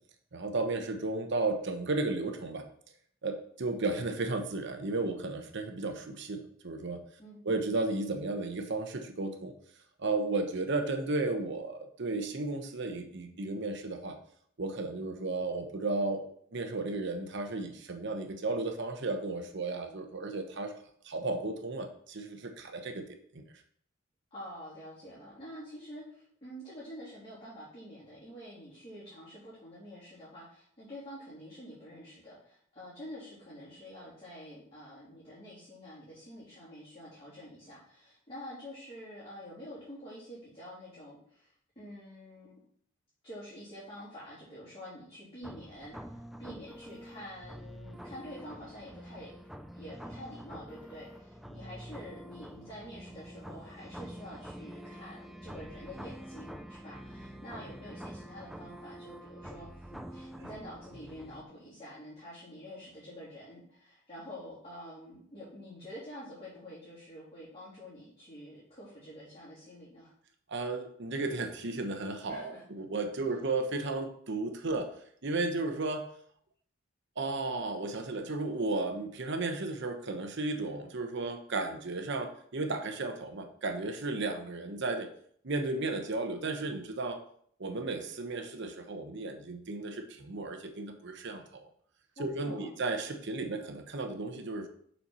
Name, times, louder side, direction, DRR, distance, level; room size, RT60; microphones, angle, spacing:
voice 1, 0.3-2.6 3.2-7.0 7.4-9.5 10.0-14.2 14.6-16.2 16.5-20.7 21.0-23.1 23.3-23.4 70.5-74.9 75.2-76.1 77.2-85.1 85.4-87.2 87.6-91.6 92.2-94.7, right 3 dB, 60° right, 6 dB, 0.9 m, -34 dB
voice 2, 24.3-42.6 43.2-49.3 49.7-70.1 72.3-72.6 92.2-92.7, equal, 25° left, -10 dB, 3.0 m, -47 dB
sound 1, 45.4-61.4, equal, ahead, 0.4 m, -46 dB
6.9 x 4.4 x 5.5 m, 0.62 s
head